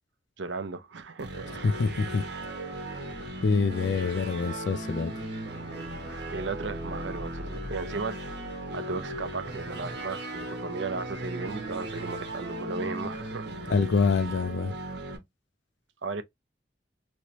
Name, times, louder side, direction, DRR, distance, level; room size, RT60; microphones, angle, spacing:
voice 1, 0.4-1.7 6.3-8.2 8.7-13.8 16.0-16.2, right 4 dB, 80° right, 0.6 m, -35 dB
sound 1, 1.2-15.2, right 1 dB, 60° right, 1.2 m, -37 dB
voice 2, 1.6-2.2 3.4-5.1 13.7-14.8, left 4 dB, 75° left, 0.4 m, -26 dB
3.1 x 3.0 x 2.8 m
head